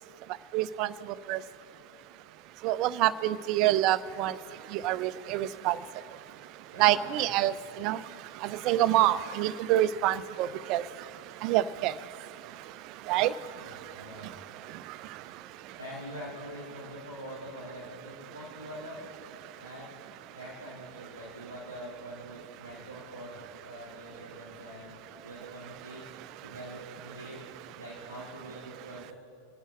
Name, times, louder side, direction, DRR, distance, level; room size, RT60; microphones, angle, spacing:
voice 1, 0.5-0.9 1.3-1.4 2.6-4.4 4.7-5.8 6.8-8.0 8.4-10.9 11.4-11.9 13.1-13.3 14.9-15.0, right 14 dB, 40° right, 15 dB, 0.5 m, -26 dB
voice 2, 6.7-7.6 13.6-14.3 14.8-14.9 15.8-19.0 19.5-19.9 20.3-25.0 25.2-26.0 26.4-27.5 27.8-29.1, equal, 90° left, -11 dB, 4.2 m, -44 dB
30.0 x 11.0 x 3.1 m, 2.7 s
figure-of-eight pair, 90°, 0 cm